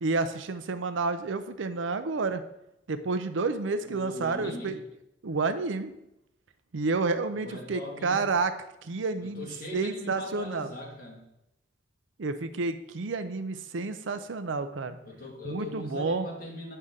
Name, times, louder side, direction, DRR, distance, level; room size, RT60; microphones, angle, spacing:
voice 1, 0.0-2.4 2.9-4.8 5.2-5.9 6.7-8.5 8.8-9.5 9.7-10.7 12.2-15.0 15.4-16.3, right 3 dB, 90° right, 10 dB, 0.6 m, -30 dB
voice 2, 3.8-4.8 7.3-8.2 9.2-11.2 15.0-16.8, left 1 dB, 50° left, -2 dB, 1.9 m, -40 dB
7.9 x 5.5 x 3.7 m, 0.85 s
head